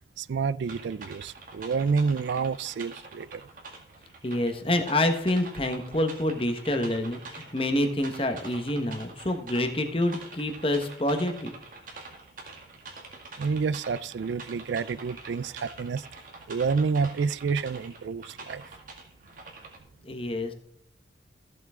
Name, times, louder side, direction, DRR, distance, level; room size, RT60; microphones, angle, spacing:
voice 1, 0.2-3.5 13.4-16.1 16.5-18.6, right 5 dB, 75° right, 0.4 m, -29 dB
sound 1, 0.6-19.8, right 3 dB, 45° right, 2.2 m, -45 dB
voice 2, 4.2-11.5 20.0-20.5, left 1 dB, 30° left, 1.2 m, -27 dB
14.5 x 7.7 x 3.6 m
head